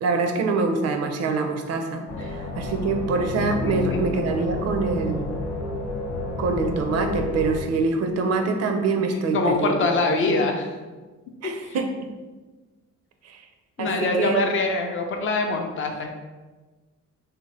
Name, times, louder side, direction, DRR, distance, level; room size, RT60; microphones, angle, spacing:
voice 1, 0.0-5.4 6.4-10.4 11.4-12.1 13.2-13.4 13.8-14.4, right 4 dB, 55° right, 5 dB, 0.4 m, -25 dB
sound 1, 2.1-7.6, left 2 dB, 85° left, 0.9 m, -30 dB
voice 2, 3.7-4.2 9.3-10.7 11.6-11.8 13.8-16.1, left 3 dB, 45° left, 3 dB, 0.4 m, -24 dB
2.7 x 2.0 x 3.1 m, 1.3 s
cardioid pair, 90°, 30 cm